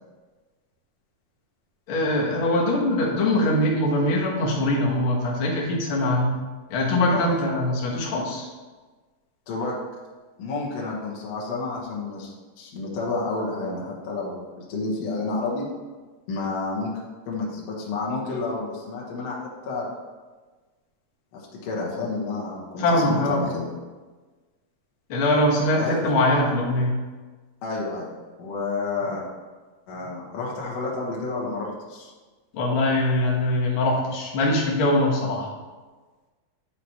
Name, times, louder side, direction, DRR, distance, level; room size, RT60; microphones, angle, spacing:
voice 1, 1.9-6.4 6.7-8.5 22.8-23.4 25.1-27.0 32.5-35.5, left 1 dB, 85° left, -3 dB, 1.1 m, -22 dB
voice 2, 10.4-15.7 16.3-16.9 17.3-19.4 19.7-19.9 21.3-23.6 25.8-26.0 27.6-28.1 28.4-29.2 29.9-32.1, left 3 dB, 60° left, -4 dB, 1.9 m, -30 dB
9.6 x 5.0 x 3.0 m, 1.3 s
omnidirectional pair, 4.3 m